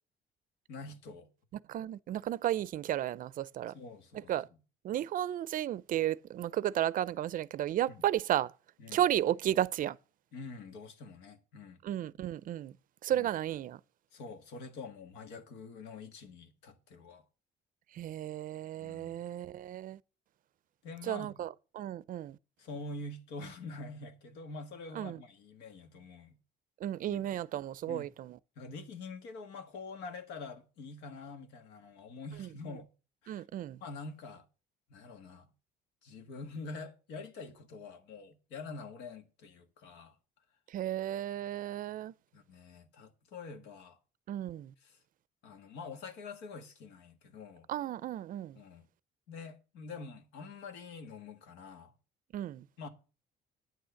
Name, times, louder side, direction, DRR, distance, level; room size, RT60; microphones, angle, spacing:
voice 1, 0.7-1.3 3.7-4.3 7.9-8.1 8.8-9.0 10.3-11.8 13.1-13.3 14.1-17.2 18.8-19.2 20.8-21.5 22.6-26.4 27.1-27.4 27.9-28.1 28.5-32.9 33.2-33.4 33.8-34.4 34.9-35.5 36.0-40.2 42.3-44.0 44.8-45.0 45.4-47.7 48.5-48.9 49.3-51.9 52.8-52.9, left 3 dB, 90° left, 1.6 m, -46 dB
voice 2, 1.7-3.7 4.3-4.5 4.8-8.5 8.9-10.0 11.8-12.7 13.0-13.8 17.9-20.0 21.1-22.4 24.9-25.2 26.8-28.4 32.4-32.5 33.3-33.8 40.7-42.1 44.3-44.7 47.7-48.6 52.3-52.6, right 12 dB, 55° right, 0.5 m, -33 dB
9.3 x 6.4 x 6.9 m
cardioid pair, 110°, 17 cm